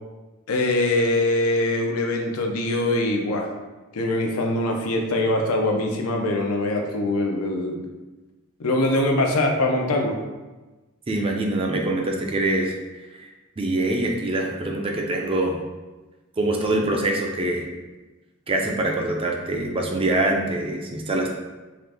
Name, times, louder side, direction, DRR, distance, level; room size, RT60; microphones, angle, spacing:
voice 1, 0.5-3.5 3.9-7.8 8.6-10.2, left 1 dB, 80° left, 2 dB, 0.6 m, -23 dB
voice 2, 11.1-12.7 13.1-13.3 13.6-15.6 16.4-17.6 18.5-21.3, right 2 dB, 25° right, 1 dB, 0.4 m, -24 dB
3.8 x 2.5 x 3.3 m, 1.2 s
head